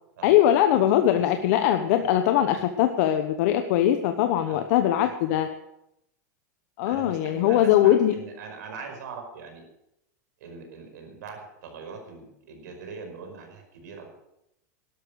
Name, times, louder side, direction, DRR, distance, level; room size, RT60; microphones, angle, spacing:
voice 1, 0.2-5.5 6.8-8.1, left 11 dB, 60° left, 7 dB, 1.1 m, -21 dB
voice 2, 1.1-1.5 2.0-2.1 4.5-4.7 5.0-5.4 6.8-9.6 10.4-14.1, right 5 dB, 80° right, 4 dB, 5.1 m, -41 dB
12.5 x 12.0 x 6.4 m, 0.83 s
supercardioid pair, 135°, 9 cm